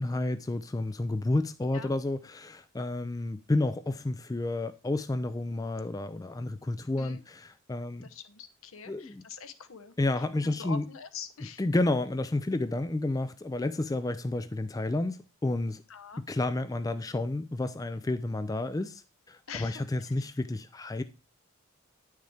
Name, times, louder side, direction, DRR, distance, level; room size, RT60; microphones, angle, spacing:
voice 1, 0.0-8.1 8.9-9.2 10.0-10.9 11.6-15.8 16.3-19.0 19.3-21.0, left 2 dB, 15° left, 0.3 m, -30 dB
voice 2, 8.0-9.9 10.4-11.6 15.9-16.2 19.5-19.8, left 6 dB, 70° left, 0.9 m, -43 dB
9.7 x 6.4 x 3.4 m
head